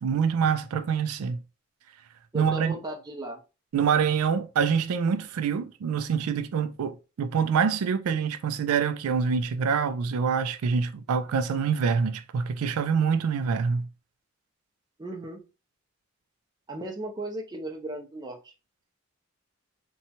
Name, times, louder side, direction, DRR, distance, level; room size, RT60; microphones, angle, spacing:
voice 1, 0.0-1.4 2.3-2.8 3.7-13.9, right 6 dB, 85° right, 0.3 m, -26 dB
voice 2, 2.3-3.4 15.0-15.4 16.7-18.5, right 1 dB, 20° right, 0.5 m, -36 dB
2.8 x 2.2 x 2.7 m
head